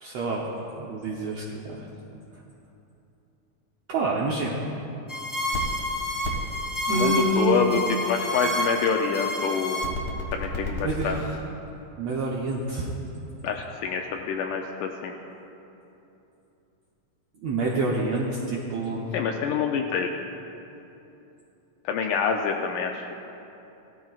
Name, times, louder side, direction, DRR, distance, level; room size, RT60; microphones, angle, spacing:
voice 1, 0.0-1.9 3.9-4.6 6.9-7.8 10.8-11.4 12.0-12.9 17.4-19.1, right 2 dB, 75° right, -4 dB, 1.5 m, -27 dB
sound 1, 5.1-11.0, equal, 45° left, 0.7 m, -29 dB
voice 2, 6.9-9.8 10.3-11.2 13.4-15.1 19.1-20.1 21.9-23.0, left 6 dB, 80° left, 3 dB, 1.9 m, -26 dB
17.0 x 13.0 x 2.4 m, 2.9 s
omnidirectional pair, 4.1 m